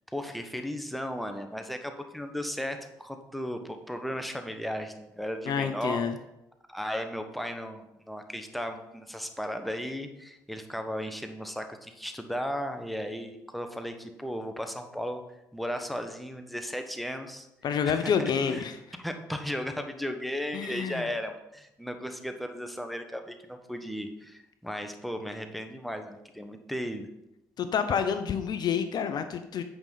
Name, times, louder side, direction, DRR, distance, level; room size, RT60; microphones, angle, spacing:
voice 1, 0.1-6.0 6.7-15.2 15.5-17.5 17.8-18.1 18.5-18.6 19.0-27.1, equal, ahead, 6 dB, 1.1 m, -35 dB
voice 2, 5.5-6.1 17.6-18.8 20.5-21.1 27.6-29.6, left 7 dB, 55° left, 9 dB, 0.6 m, -28 dB
8.9 x 5.3 x 3.9 m, 0.90 s
hypercardioid pair, 50°, 8 cm